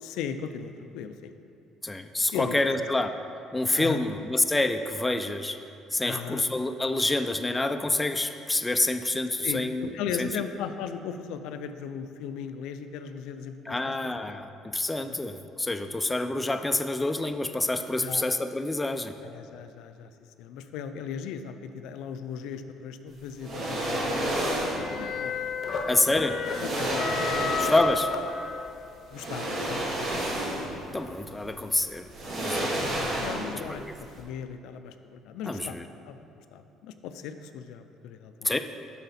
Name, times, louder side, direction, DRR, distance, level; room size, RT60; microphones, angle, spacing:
voice 1, 0.0-1.4 2.3-2.8 3.7-4.0 6.0-6.5 9.4-13.9 14.3-14.4 15.1-15.2 18.0-18.3 19.2-20.1 20.4-26.0 26.6-27.6 28.6-28.7 29.1-30.2 32.6-35.8 36.0-36.2 36.5-38.6, left 7 dB, 80° left, 9 dB, 0.4 m, -38 dB
voice 2, 1.8-3.2 3.5-5.6 5.9-9.9 10.2-10.3 13.7-19.1 25.9-26.4 27.6-28.1 30.9-32.8 33.7-33.9 35.5-35.9 38.4-38.6, left 2 dB, 10° left, 7 dB, 0.3 m, -27 dB
sound 1, 23.4-24.9 26.0-26.1 26.4-28.0 29.1-30.8 31.2-31.3 32.1-33.7 34.0-34.1, right 1 dB, 55° right, 1.6 m, -30 dB
sound 2, 24.1-28.9, left 5 dB, 45° left, 0.7 m, -32 dB
8.0 x 5.7 x 4.1 m, 2.6 s
cardioid pair, 120°, 0 cm